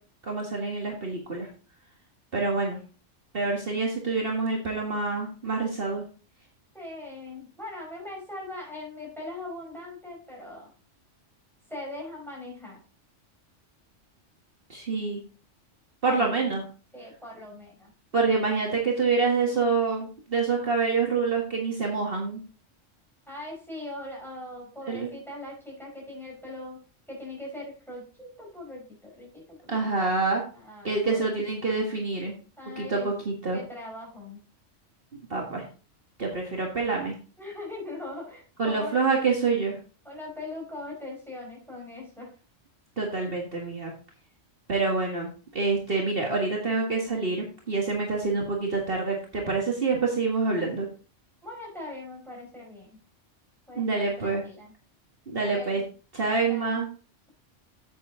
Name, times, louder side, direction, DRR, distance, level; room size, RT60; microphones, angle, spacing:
voice 1, 0.2-1.5 2.3-2.8 3.3-6.1 14.7-15.2 16.0-16.6 18.1-22.4 24.9-25.1 29.7-30.4 30.8-32.3 32.8-33.6 35.1-35.6 36.2-37.1 38.6-39.8 43.0-43.9 44.7-50.9 53.7-54.4 55.3-55.8 56.1-56.9, right 4 dB, 50° right, -1 dB, 1.8 m, -27 dB
voice 2, 6.7-10.7 11.7-12.8 16.0-16.4 16.9-17.9 23.3-26.8 27.1-29.9 30.5-31.2 32.6-33.1 33.5-34.4 37.4-39.0 40.0-42.3 51.4-53.0 53.7-54.7 55.3-55.8 56.5-56.7, left 2 dB, ahead, -3 dB, 5.3 m, -40 dB
9.3 x 7.9 x 3.7 m, 0.37 s
omnidirectional pair, 1.3 m